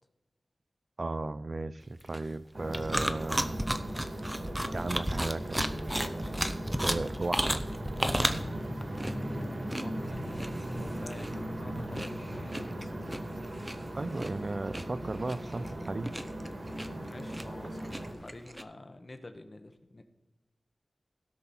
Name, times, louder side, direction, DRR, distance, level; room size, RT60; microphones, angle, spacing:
voice 1, 1.0-3.6 4.7-5.7 6.8-7.6 13.9-16.1, right 2 dB, 45° right, 0.4 m, -35 dB
sound 1, 1.8-18.6, right 1 dB, 10° right, 0.7 m, -34 dB
sound 2, 2.5-18.1, right 1 dB, 65° right, 2.4 m, -38 dB
voice 2, 9.7-13.2 16.9-20.0, left 2 dB, 40° left, 1.2 m, -49 dB
16.5 x 6.0 x 4.3 m
wide cardioid pair, 85°, 0 cm